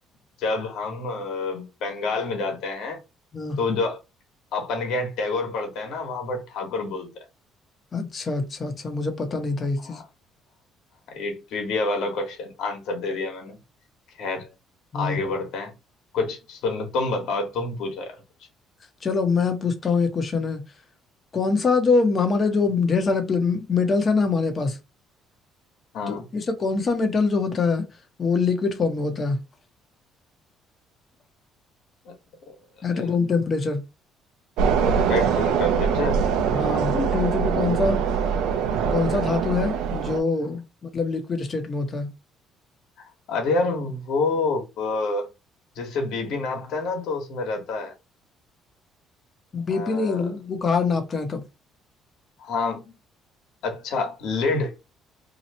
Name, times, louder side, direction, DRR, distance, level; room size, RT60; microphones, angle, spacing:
voice 1, 0.4-3.0 3.6-4.0 4.5-7.1 9.8-10.0 11.1-13.6 14.2-14.5 14.9-15.7 16.1-18.1 25.9-26.3 32.0-32.1 32.9-33.1 35.1-36.2 43.0-45.3 45.7-47.9 49.7-50.3 52.4-52.8 53.6-54.7, left 3 dB, 75° left, 1.4 m, -28 dB
voice 2, 7.9-10.0 14.9-15.2 19.0-20.6 21.3-24.8 26.1-27.9 28.2-29.4 32.8-33.8 36.5-38.0 38.9-42.1 49.5-51.4, left 4 dB, 35° left, 1.0 m, -24 dB
sound 1, 34.6-40.2, right 7 dB, 85° right, 0.6 m, -23 dB
2.9 x 2.4 x 4.3 m
cardioid pair, 95°, 0 cm